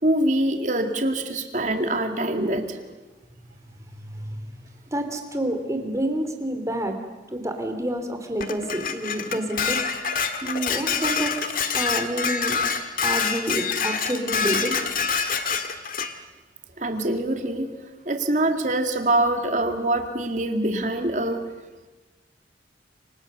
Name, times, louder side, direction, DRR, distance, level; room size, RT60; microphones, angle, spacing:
voice 1, 0.0-2.8 16.8-17.7 18.1-21.5, right 1 dB, 45° right, 6 dB, 2.3 m, -24 dB
voice 2, 4.1-4.5 4.9-6.9 7.3-9.8 10.4-12.6 13.0-14.8, right 1 dB, 20° right, 5 dB, 3.1 m, -28 dB
Dishes pots and pans, 8.4-16.1, left 6 dB, 50° left, 1.9 m, -26 dB
28.0 x 25.0 x 6.8 m, 1.2 s
head